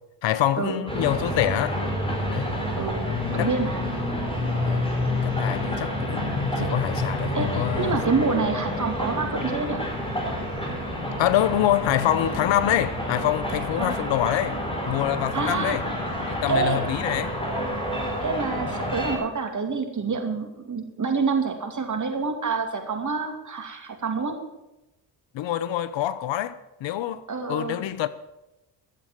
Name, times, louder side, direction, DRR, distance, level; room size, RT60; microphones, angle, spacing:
voice 1, 0.2-1.8 2.3-2.5 3.4-3.5 4.6-4.9 5.2-8.0 11.2-14.6 14.9-15.8 16.2-17.4 25.3-27.2 27.5-28.1, left 12 dB, 65° left, 0.8 m, -25 dB
sound 1, 0.9-19.2, left 1 dB, 10° left, 4.6 m, -28 dB
voice 2, 2.8-3.1 3.3-3.9 7.3-9.8 13.8-14.0 15.3-15.8 16.5-16.8 18.2-24.3 27.3-27.8, right 4 dB, 40° right, 2.7 m, -27 dB
12.0 x 7.7 x 7.5 m
supercardioid pair, 55°, 47 cm